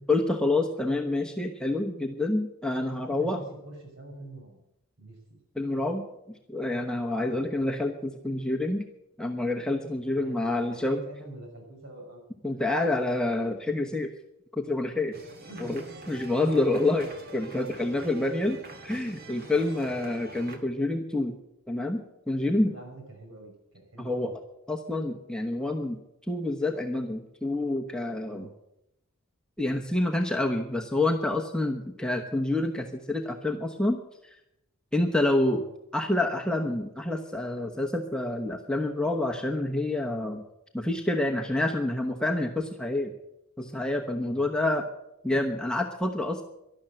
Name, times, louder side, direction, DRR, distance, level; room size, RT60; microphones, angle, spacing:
voice 1, 0.1-3.4 5.6-6.0 6.5-8.8 9.2-11.0 12.4-14.1 14.5-15.2 15.6-15.8 16.1-18.6 18.8-21.4 21.7-22.0 22.3-22.7 24.0-24.3 24.7-26.0 26.3-28.5 29.6-34.0 34.9-35.6 35.9-40.4 40.7-43.1 43.6-44.8 45.2-46.4, left 2 dB, 5° left, 1 dB, 1.0 m, -27 dB
voice 2, 2.9-4.6 5.0-5.4 7.2-7.5 10.1-12.5 15.4-16.2 22.6-24.3 28.3-28.5 35.5-35.7 44.2-44.4, right 1 dB, 60° right, 1 dB, 6.2 m, -46 dB
sound 1, 15.1-20.6, right 2 dB, 45° right, 1.8 m, -44 dB
12.0 x 12.0 x 7.9 m, 0.82 s
head